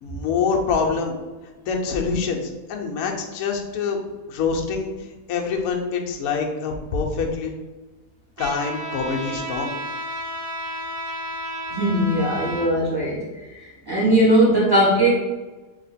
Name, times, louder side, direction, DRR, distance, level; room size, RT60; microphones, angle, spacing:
voice 1, 0.0-1.2 1.7-4.0 4.3-4.9 5.3-7.5 8.4-9.7, left 5 dB, 70° left, 1 dB, 1.0 m, -25 dB
Trumpet, 8.4-12.7, equal, 90° right, 1.4 m, -32 dB
voice 2, 11.7-13.2 13.8-15.1, right 1 dB, 15° right, -8 dB, 1.2 m, -18 dB
3.0 x 2.9 x 4.0 m, 1.2 s
omnidirectional pair, 1.7 m